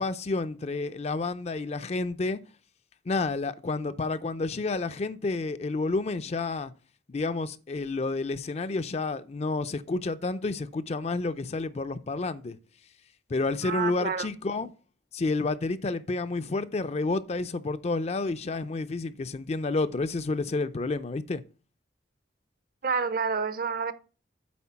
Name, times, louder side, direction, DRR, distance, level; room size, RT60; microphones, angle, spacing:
voice 1, 0.0-2.4 3.1-6.7 7.1-12.6 13.3-14.7 15.1-21.4, left 3 dB, 35° left, 0.4 m, -30 dB
voice 2, 13.6-14.3 22.8-23.9, right 5 dB, 55° right, 0.6 m, -29 dB
8.5 x 4.3 x 5.7 m
head